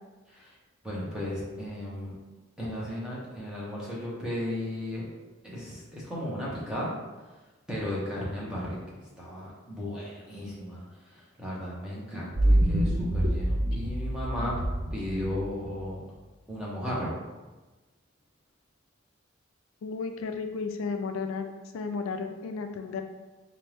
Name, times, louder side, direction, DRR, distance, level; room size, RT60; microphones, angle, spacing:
voice 1, 0.8-2.2 2.6-5.1 5.4-6.9 7.7-14.6 14.9-16.0 16.5-17.1, left 1 dB, 5° right, -7 dB, 0.9 m, -35 dB
sound 1, 12.4-15.9, right 1 dB, 30° right, 0.4 m, -26 dB
voice 2, 19.8-23.0, left 4 dB, 80° left, 6 dB, 0.3 m, -33 dB
4.2 x 2.5 x 3.3 m, 1.2 s
head